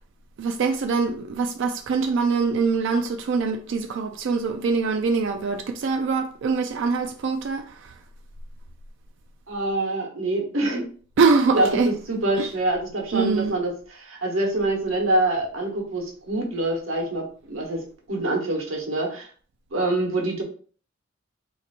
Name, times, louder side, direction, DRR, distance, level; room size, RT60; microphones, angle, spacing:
voice 1, 0.4-7.9 11.2-11.9 12.4-12.5 13.1-13.6, right 4 dB, 65° right, 0.3 m, -23 dB
voice 2, 9.5-10.9 11.5-19.3 19.7-20.4, right 2 dB, 85° right, 1.1 m, -25 dB
2.9 x 2.5 x 4.0 m
head